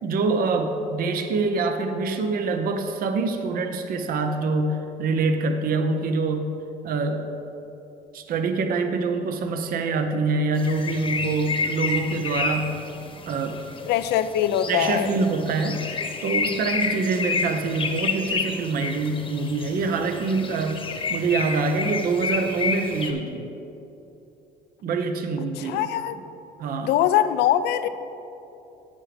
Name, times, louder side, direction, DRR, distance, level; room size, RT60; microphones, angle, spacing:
voice 1, 0.0-6.5 6.8-7.4 8.1-12.8 13.3-13.6 14.7-15.9 16.2-20.8 21.1-23.5 24.8-26.2 26.6-26.9, right 3 dB, 60° right, 6 dB, 0.8 m, -25 dB
sound 1, 10.5-23.1, left 4 dB, 30° left, 1.0 m, -30 dB
voice 2, 13.9-15.1 25.6-26.2 26.8-27.9, left 11 dB, 80° left, 12 dB, 0.5 m, -22 dB
10.5 x 8.8 x 3.4 m, 2.9 s
cardioid pair, 110°, 17 cm